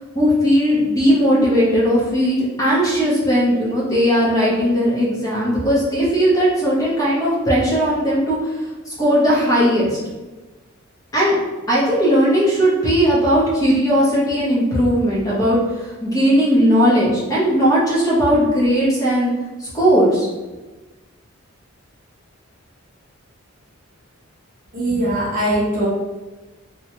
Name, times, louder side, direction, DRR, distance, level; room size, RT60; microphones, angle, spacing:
voice 1, 0.1-10.0 11.1-11.4 11.7-19.3 19.6-20.3, equal, 15° left, -7 dB, 0.7 m, -17 dB
voice 2, 24.7-25.9, right 1 dB, 40° right, -4 dB, 0.6 m, -20 dB
2.8 x 2.2 x 2.9 m, 1.2 s
head